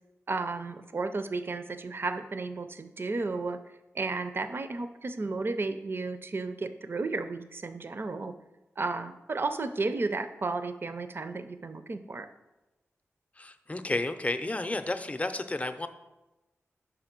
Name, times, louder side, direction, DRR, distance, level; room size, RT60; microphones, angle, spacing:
voice 1, 0.3-3.6 3.9-8.3 8.8-12.3, right 3 dB, 45° right, 10 dB, 0.5 m, -33 dB
voice 2, 13.4-15.9, left 2 dB, 25° left, 9 dB, 0.6 m, -32 dB
4.9 x 4.9 x 6.0 m, 1.0 s
cardioid pair, 45°, 5 cm